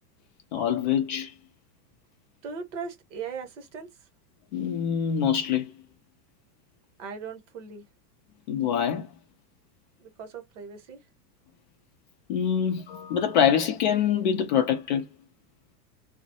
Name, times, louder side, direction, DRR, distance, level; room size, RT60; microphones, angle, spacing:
voice 1, 0.5-1.3 4.5-5.7 8.5-9.1 12.3-15.0, left 8 dB, 35° left, 0.4 m, -25 dB
voice 2, 2.4-3.9 7.0-7.8 10.0-11.0, right 5 dB, 50° right, 1.0 m, -38 dB
2.2 x 2.0 x 2.7 m
figure-of-eight pair, 90°, 46 cm